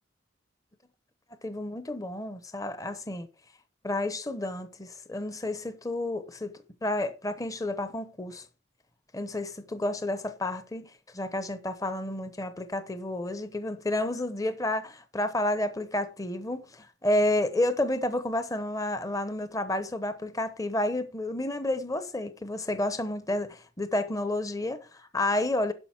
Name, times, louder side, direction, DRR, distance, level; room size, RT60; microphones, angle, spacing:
voice 1, 1.4-3.3 3.8-8.5 9.1-25.7, left 1 dB, 15° left, 0.8 m, -30 dB
11.5 x 5.2 x 5.9 m
head